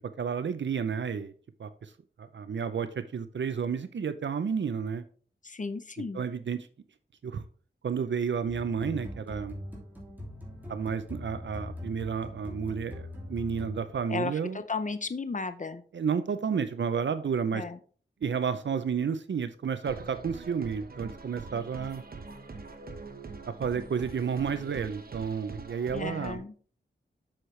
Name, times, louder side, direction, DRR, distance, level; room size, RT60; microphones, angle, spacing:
voice 1, 0.2-1.3 1.6-1.9 2.2-5.0 6.1-6.7 7.2-7.4 7.8-9.6 10.7-14.6 15.9-17.6 18.2-22.0 23.5-26.4, right 6 dB, 75° right, 11 dB, 0.6 m, -31 dB
voice 2, 5.4-6.2 14.1-15.8 17.5-17.8 25.9-26.5, left 4 dB, 40° left, 11 dB, 0.6 m, -34 dB
sound 1, 8.5-14.2, left 1 dB, 10° right, 2.9 m, -41 dB
sound 2, 19.8-26.4, right 3 dB, 50° right, 1.0 m, -44 dB
7.5 x 6.4 x 3.2 m, 0.43 s
wide cardioid pair, 90°, 19 cm